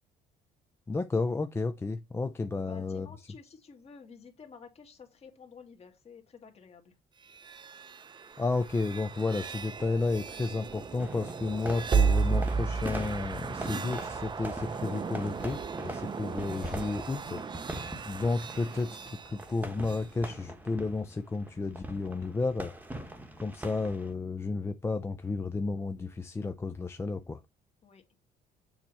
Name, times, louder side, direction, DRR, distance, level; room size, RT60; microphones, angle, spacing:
voice 1, 0.9-3.1 8.4-22.7 23.4-27.4, left 3 dB, 15° left, 0.5 m, -32 dB
voice 2, 2.6-7.0 27.8-28.0, left 5 dB, 35° left, 1.8 m, -51 dB
sound 1, 7.2-20.1, right 5 dB, 25° right, 0.6 m, -34 dB
sound 2, 11.0-24.1, right 1 dB, 10° right, 1.1 m, -42 dB
7.1 x 3.0 x 5.5 m
cardioid pair, 110°, 17 cm